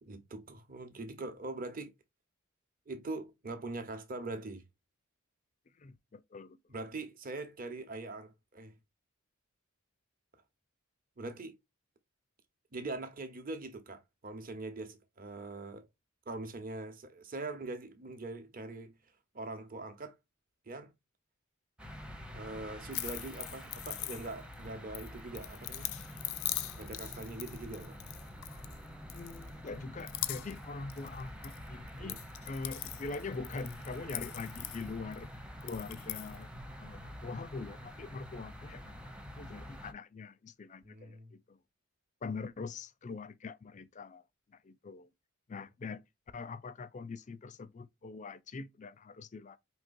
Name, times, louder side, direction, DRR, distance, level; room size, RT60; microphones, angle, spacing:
voice 1, 0.0-1.9 2.9-4.6 6.7-8.7 11.2-11.6 12.7-15.9 16.3-19.0 19.3-20.1 20.7-20.9 22.3-25.9 26.7-28.0 32.0-32.2 40.8-41.3, right 2 dB, 40° right, 1.0 m, -42 dB
voice 2, 5.8-6.6 29.1-35.3 35.6-36.5 36.8-39.0 39.4-41.6 42.2-44.2 44.5-45.1 45.5-46.0 46.3-49.6, left 4 dB, 35° left, 0.4 m, -43 dB
sound 1, 21.8-39.9, equal, 5° right, 0.6 m, -47 dB
sound 2, 22.9-24.5 24.9-28.8 29.1-29.7 30.0-30.6 30.9-31.6 31.9-35.2 35.6-36.4, left 15 dB, 85° left, 0.5 m, -41 dB
5.1 x 3.2 x 2.5 m
head